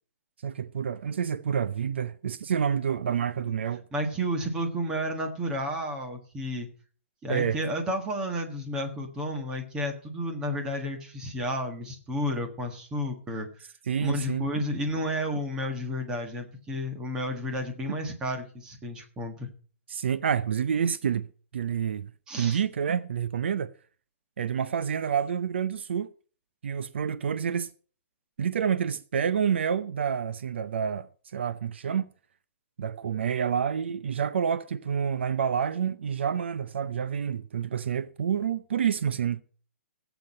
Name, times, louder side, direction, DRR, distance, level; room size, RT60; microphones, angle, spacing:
voice 1, 0.4-3.8 7.3-7.6 13.9-14.5 19.9-21.3 21.5-22.1 22.4-23.7 24.4-26.1 26.6-27.7 28.4-32.1 32.8-39.4, right 7 dB, 55° right, 0.6 m, -28 dB
voice 2, 3.9-6.7 7.2-13.5 14.0-19.5 22.3-22.6, equal, 10° right, 1.5 m, -31 dB
17.0 x 8.1 x 5.4 m
hypercardioid pair, 175°, 7 cm